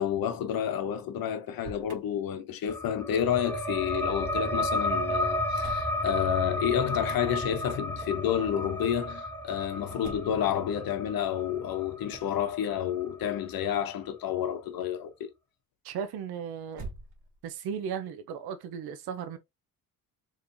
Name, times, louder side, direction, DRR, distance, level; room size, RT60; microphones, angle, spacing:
voice 1, 0.0-15.3, left 9 dB, 70° left, 0.8 m, -30 dB
Motor vehicle (road), 1.5-2.0 5.6-6.0 7.9-8.3 10.0-10.5 12.1-12.4 16.7-17.5, right 3 dB, 50° right, 1.3 m, -44 dB
sound 1, 2.7-13.8, left 1 dB, 5° left, 0.5 m, -33 dB
voice 2, 15.8-16.8 17.4-19.4, right 7 dB, 85° right, 0.6 m, -36 dB
3.7 x 3.1 x 2.6 m
cardioid pair, 140°, 37 cm